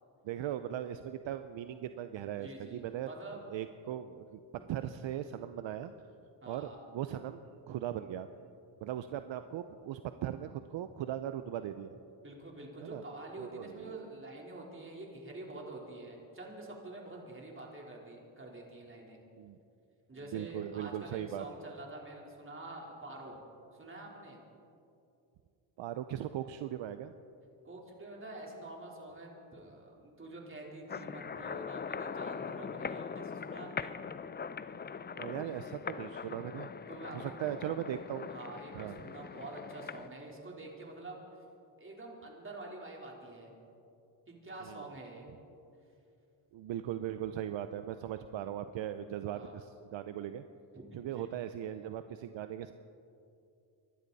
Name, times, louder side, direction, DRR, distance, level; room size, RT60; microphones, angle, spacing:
voice 1, 0.2-3.1 3.5-4.4 4.7-5.9 6.5-8.3 8.8-12.0 12.8-13.0 13.4-14.0 19.4-19.6 20.3-21.4 25.8-27.1 35.1-36.7 37.1-38.3 38.7-39.0 44.6-44.9 46.5-50.4 50.9-52.7, right 11 dB, 65° right, 10 dB, 0.7 m, -39 dB
voice 2, 2.4-3.4 6.4-6.8 12.2-19.2 20.1-23.4 23.7-24.4 27.6-33.9 36.9-37.6 38.3-41.2 41.8-43.5 44.3-45.3 49.3-49.5 50.7-51.3, right 2 dB, 25° right, -2 dB, 3.8 m, -47 dB
sound 1, 30.9-40.1, left 6 dB, 20° left, 0.4 m, -41 dB
25.5 x 12.0 x 4.1 m, 2.6 s
cardioid pair, 85°, 49 cm